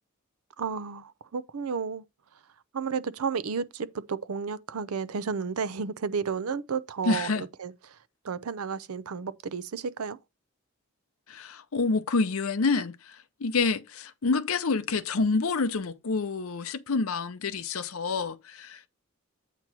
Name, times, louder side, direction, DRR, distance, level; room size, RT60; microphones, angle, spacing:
voice 1, 0.6-2.0 2.7-7.7 8.2-10.2, right 5 dB, 85° right, 0.6 m, -32 dB
voice 2, 7.0-7.4 11.3-18.9, left 4 dB, 75° left, 0.7 m, -28 dB
8.3 x 3.0 x 6.0 m
head